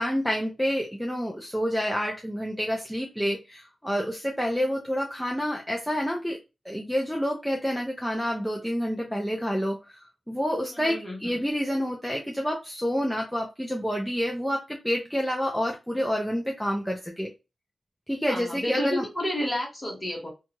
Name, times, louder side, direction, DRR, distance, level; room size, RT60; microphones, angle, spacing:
voice 1, 0.0-6.4 6.7-17.3 18.1-19.1, equal, ahead, 0.4 m, -28 dB
voice 2, 10.7-11.4 18.3-20.3, left 1 dB, 20° left, 1.1 m, -31 dB
2.7 x 2.2 x 2.9 m
wide cardioid pair, 170°, 0 cm